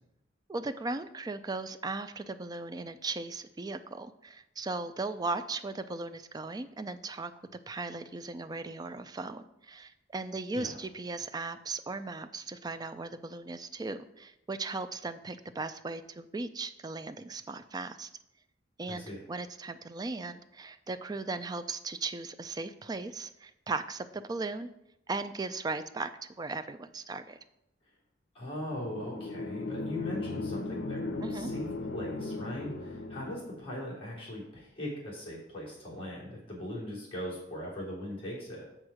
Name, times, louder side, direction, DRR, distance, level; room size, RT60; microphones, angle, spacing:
voice 1, 0.5-7.3 7.7-18.1 18.8-24.7 25.1-27.4 31.2-31.5, right 3 dB, 20° right, 10 dB, 0.4 m, -37 dB
voice 2, 18.9-19.2 28.3-38.7, left 1 dB, 30° left, -6 dB, 3.3 m, -40 dB
sound 1, 28.7-33.7, left 2 dB, 75° left, 0.8 m, -37 dB
6.4 x 6.2 x 4.9 m, 0.84 s
head